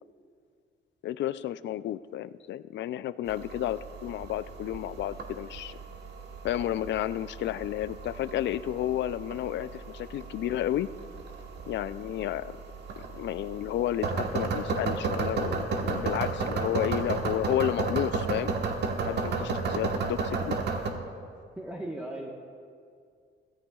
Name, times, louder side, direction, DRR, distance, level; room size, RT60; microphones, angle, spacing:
voice 1, 1.0-5.8 6.4-10.9 11.7-12.5 13.1-18.5 19.0-20.6, left 12 dB, 65° left, 15 dB, 0.4 m, -31 dB
sound 1, 3.3-20.9, right 4 dB, 60° right, 1.3 m, -33 dB
voice 2, 21.6-22.3, right 1 dB, 5° right, -2 dB, 1.2 m, -37 dB
16.0 x 14.0 x 2.3 m, 2.2 s
cardioid pair, 90°, 20 cm